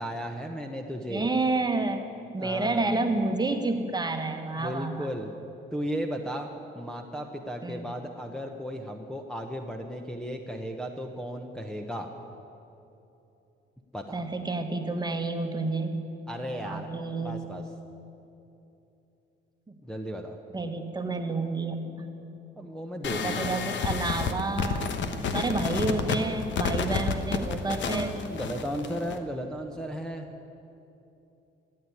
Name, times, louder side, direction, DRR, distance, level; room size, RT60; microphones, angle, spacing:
voice 1, 0.0-1.3 2.4-2.9 4.5-5.3 5.7-6.5 6.7-12.1 13.9-14.2 16.3-16.9 17.2-17.6 19.8-20.4 22.6-23.5 27.9-30.3, equal, 5° left, 1 dB, 1.0 m, -35 dB
voice 2, 1.1-2.0 2.3-5.1 7.6-7.9 14.1-16.0 16.6-17.4 19.7-19.8 20.5-22.1 23.0-28.1, right 3 dB, 20° right, 6 dB, 1.3 m, -30 dB
sound 1, 23.0-29.2, left 5 dB, 70° left, 1.2 m, -30 dB
14.0 x 8.9 x 9.4 m, 2.9 s
cardioid pair, 90°, 20 cm